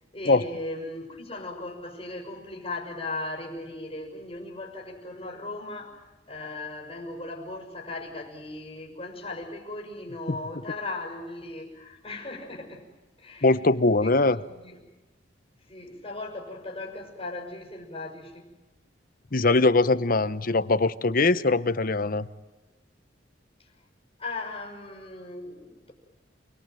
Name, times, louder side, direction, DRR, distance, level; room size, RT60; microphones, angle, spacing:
voice 1, 0.1-12.9 13.2-13.5 14.0-14.8 15.7-18.5 23.6-23.7 24.2-25.9, left 2 dB, 25° left, 0 dB, 6.0 m, -37 dB
voice 2, 13.4-14.4 19.3-22.3, left 3 dB, 50° left, 14 dB, 1.0 m, -22 dB
29.0 x 21.5 x 9.3 m, 1.1 s
head